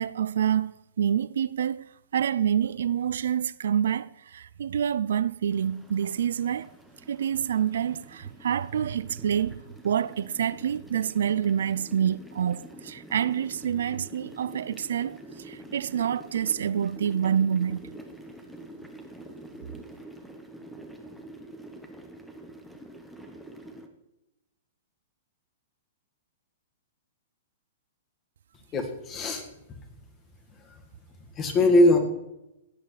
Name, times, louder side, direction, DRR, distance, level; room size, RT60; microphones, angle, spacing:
voice 1, 0.0-1.9 2.1-6.7 7.1-17.8, right 9 dB, 75° right, 0.3 m, -27 dB
sound 1, 5.5-23.9, right 1 dB, ahead, 1.1 m, -46 dB
voice 2, 28.7-29.4 30.6-30.8 31.4-32.0, left 1 dB, 25° left, 1.7 m, -21 dB
16.0 x 8.3 x 3.2 m
hypercardioid pair, 130°, 0 cm